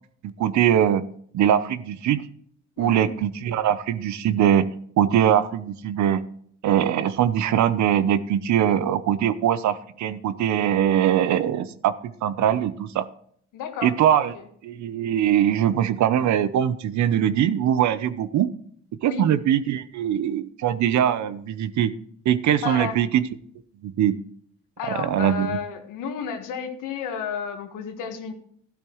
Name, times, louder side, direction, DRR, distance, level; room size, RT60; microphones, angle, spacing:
voice 1, 0.2-1.0 1.3-2.2 2.8-4.7 5.0-6.2 6.6-13.1 13.8-14.3 14.6-18.5 19.0-21.9 22.2-23.2 23.8-24.1 24.9-25.5, right 10 dB, 65° right, 14 dB, 0.8 m, -22 dB
voice 2, 2.8-3.1 13.5-14.5 19.0-19.2 22.6-23.0 24.8-28.3, left 6 dB, 80° left, 6 dB, 1.6 m, -32 dB
12.5 x 12.0 x 3.1 m, 0.62 s
supercardioid pair, 75°, 31 cm